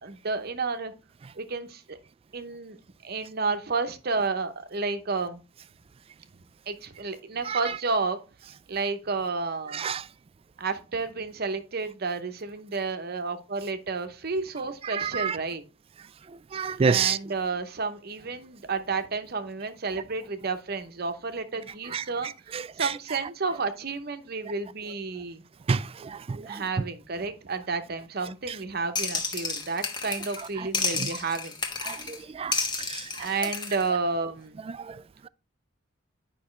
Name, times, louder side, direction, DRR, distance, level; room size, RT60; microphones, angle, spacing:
voice 1, 0.0-0.9 1.3-2.0 2.3-2.8 3.0-5.4 6.7-8.3 8.7-9.8 10.6-15.6 16.8-25.4 26.5-31.6 33.2-34.6, right 4 dB, 55° right, 0.8 m, -31 dB
voice 2, 7.4-7.8 9.7-10.0 14.9-15.4 16.5-17.2 21.9-22.0 22.5-23.0 25.7-25.8 26.5-26.6 30.6-30.7 31.0-31.1 31.8-32.5 34.7-34.8, right 6 dB, 30° right, 0.3 m, -27 dB
sound 1, 29.0-30.5 30.7-32.2 32.5-33.8, left 4 dB, 25° left, 1.1 m, -31 dB
9.5 x 5.4 x 3.2 m
head